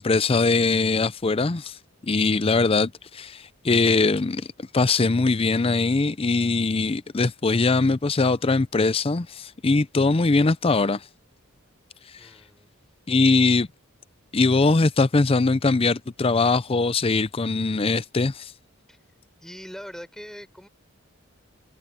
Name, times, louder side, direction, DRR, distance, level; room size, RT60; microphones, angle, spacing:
voice 1, 0.0-1.7 2.0-4.5 4.7-11.0 13.1-13.7 14.3-18.5, left 3 dB, 25° left, 0.5 m, -21 dB
voice 2, 12.2-12.7 18.9-19.0 19.4-20.7, equal, ahead, 5.0 m, -41 dB
head